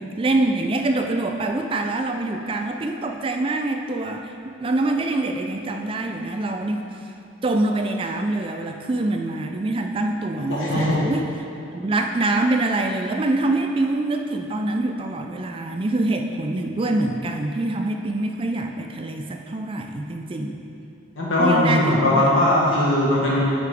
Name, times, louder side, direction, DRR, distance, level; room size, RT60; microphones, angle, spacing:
voice 1, 0.0-7.1 7.4-11.3 11.7-20.6 21.4-22.3, right 2 dB, 25° right, 4 dB, 0.3 m, -25 dB
voice 2, 10.5-11.0 21.2-23.4, left 1 dB, 80° left, -6 dB, 1.4 m, -19 dB
8.2 x 4.8 x 3.4 m, 2.7 s
head